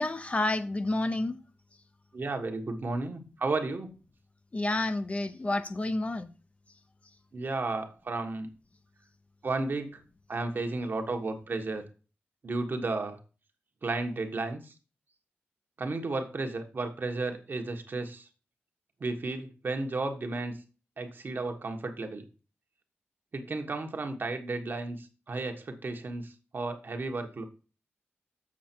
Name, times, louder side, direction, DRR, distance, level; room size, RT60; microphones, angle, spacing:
voice 1, 0.0-1.4 4.5-6.3, left 2 dB, 30° left, 0.7 m, -29 dB
voice 2, 2.1-3.9 7.3-8.5 9.4-10.0 10.3-11.9 12.4-13.2 13.8-14.7 15.8-18.3 19.0-20.6 21.0-22.2 23.3-27.4, right 3 dB, 50° right, 1.3 m, -33 dB
7.4 x 6.3 x 4.4 m
wide cardioid pair, 110°, 4 cm